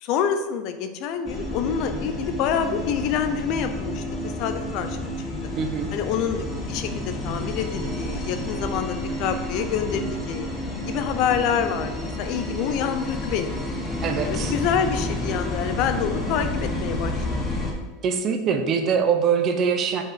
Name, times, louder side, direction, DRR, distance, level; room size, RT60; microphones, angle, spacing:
voice 1, 0.0-5.1 5.9-10.5 10.9-13.6 14.2-17.2, left 8 dB, 55° left, 8 dB, 0.7 m, -27 dB
sound 1, 1.3-17.7, left 1 dB, 15° left, 1.3 m, -30 dB
voice 2, 5.6-5.9 14.0-14.5 18.0-20.0, right 6 dB, 40° right, 6 dB, 0.8 m, -23 dB
5.5 x 4.8 x 4.7 m, 1.2 s
supercardioid pair, 125°, 0 cm